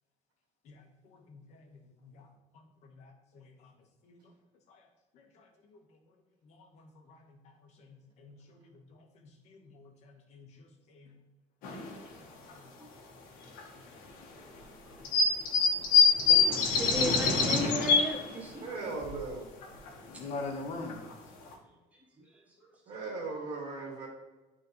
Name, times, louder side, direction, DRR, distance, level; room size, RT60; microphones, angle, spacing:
voice 1, 0.6-2.3 2.8-3.7 4.0-4.3 4.7-4.8 5.1-5.8 6.4-7.4 7.8-10.5 10.9-11.1 11.9-12.7 13.9-14.0 20.1-21.0, left 3 dB, 55° left, 4 dB, 1.3 m, -46 dB
sound 1, 11.6-11.9 12.5-12.6 13.6-13.7 15.0-18.2 18.7-18.8 19.0-19.1 19.6-19.9 20.5-20.6 20.9-21.1 21.5-21.6, left 4 dB, 80° left, 1.5 m, -24 dB
voice 2, 16.3-18.7 20.1-20.3 21.9-22.7, right 1 dB, 10° right, -3 dB, 1.5 m, -37 dB
voice 3, 18.6-19.5 22.9-24.1, right 3 dB, 35° right, -5 dB, 2.2 m, -38 dB
11.5 x 4.3 x 3.1 m, 1.1 s
cardioid pair, 170°, 14 cm